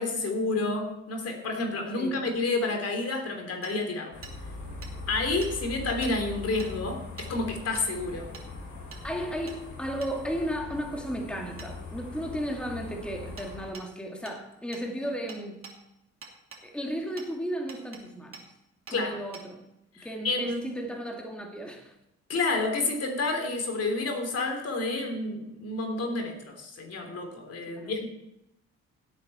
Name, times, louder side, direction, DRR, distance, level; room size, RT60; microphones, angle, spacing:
voice 1, 0.0-4.2 5.1-8.3 18.9-19.2 20.0-20.6 22.3-28.1, left 3 dB, 55° left, 3 dB, 3.2 m, -30 dB
voice 2, 2.0-2.3 9.0-15.7 16.6-18.4 18.9-19.7 20.0-21.9 27.7-28.0, equal, 5° left, 1 dB, 2.2 m, -34 dB
Hammer, 3.6-3.7 4.2-4.4 4.8-4.9 5.4-5.5 6.0-6.1 6.6-6.7 7.2-7.3 7.7-7.9 8.3-8.5 8.9-9.0 9.5-9.6 10.0-10.1 11.6-11.7 13.4-13.5 13.7-13.9 14.3-14.4 14.7-14.9 15.3-15.8 16.2-16.6 17.2-17.3 17.7-18.0 18.3-18.5 18.9-19.0 19.3-19.5, right 5 dB, 45° right, 2.9 m, -45 dB
sound 1, 4.1-13.7, left 3 dB, 75° left, 5.7 m, -41 dB
17.0 x 8.3 x 4.3 m, 0.85 s
cardioid pair, 90°, 30 cm